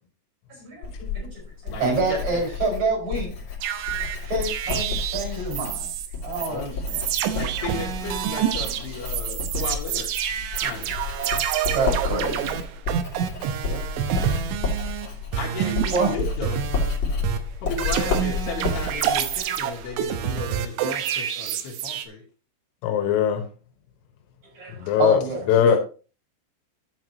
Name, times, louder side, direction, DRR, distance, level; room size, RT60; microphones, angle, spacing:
voice 1, 0.5-0.9 1.1-3.3 4.2-5.9 6.2-7.0 9.2-9.3 10.6-10.8 11.7-12.6 15.9-16.1 24.5-25.8, right 2 dB, 35° right, 6.3 m, -27 dB
Writing, 0.8-20.4, left 3 dB, 40° left, 2.7 m, -31 dB
voice 2, 1.7-2.4 6.5-6.7 7.3-10.1 10.5-10.9 13.6-13.9 15.4-16.6 17.6-22.2, left 4 dB, 65° left, 3.4 m, -34 dB
sound 1, 3.6-6.1 6.3-6.5 6.9-15.1 15.3-17.0 17.2-22.1, right 9 dB, 75° right, 3.1 m, -27 dB
voice 3, 22.8-23.5 24.8-25.2 25.5-25.8, left 9 dB, 85° left, 3.8 m, -20 dB
11.5 x 7.7 x 3.0 m
omnidirectional pair, 5.7 m